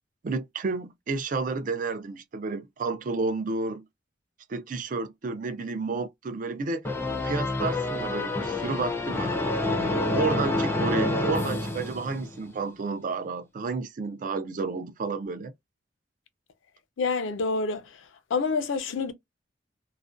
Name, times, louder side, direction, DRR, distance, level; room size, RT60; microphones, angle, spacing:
voice 1, 0.2-3.8 4.5-6.8 7.2-9.3 10.1-15.5, right 3 dB, 45° right, 0.4 m, -31 dB
sound 1, 6.8-12.5, left 2 dB, 10° left, 0.4 m, -28 dB
voice 2, 17.0-17.9 18.3-19.1, left 4 dB, 90° left, 0.5 m, -27 dB
2.4 x 2.1 x 2.4 m
head